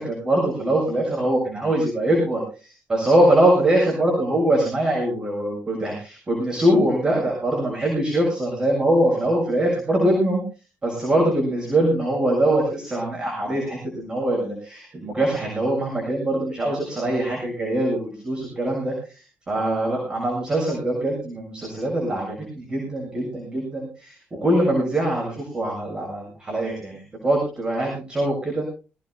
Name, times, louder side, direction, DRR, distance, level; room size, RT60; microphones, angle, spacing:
voice 1, 0.0-10.4 10.8-18.0 18.2-26.9 27.2-28.7, right 1 dB, 25° right, -2 dB, 7.2 m, -23 dB
22.0 x 18.0 x 2.2 m, 0.33 s
cardioid pair, 140°, 4 cm